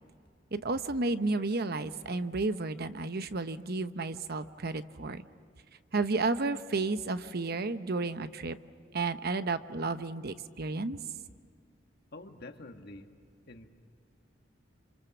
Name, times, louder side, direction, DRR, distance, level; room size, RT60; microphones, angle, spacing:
voice 1, 0.5-5.2 5.9-8.6 8.9-11.0, right 3 dB, 55° right, 11 dB, 1.0 m, -32 dB
voice 2, 12.1-13.1 13.5-13.7, left 2 dB, 55° left, 5 dB, 1.8 m, -47 dB
28.0 x 27.5 x 7.2 m, 2.3 s
head